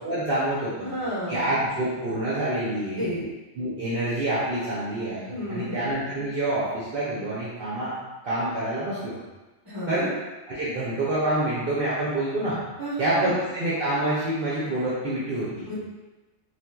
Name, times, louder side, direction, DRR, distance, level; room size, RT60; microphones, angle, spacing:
voice 1, 0.0-0.9 1.3-3.1 3.6-7.9 8.2-9.1 9.9-10.1 10.5-12.6 13.0-15.7, right 1 dB, 60° right, -8 dB, 0.8 m, -27 dB
voice 2, 0.8-1.5 3.0-3.2 5.3-5.8 9.6-10.1 12.8-13.3 15.7-15.8, equal, 20° right, -9 dB, 1.2 m, -31 dB
4.1 x 2.4 x 2.2 m, 1.1 s
omnidirectional pair, 1.2 m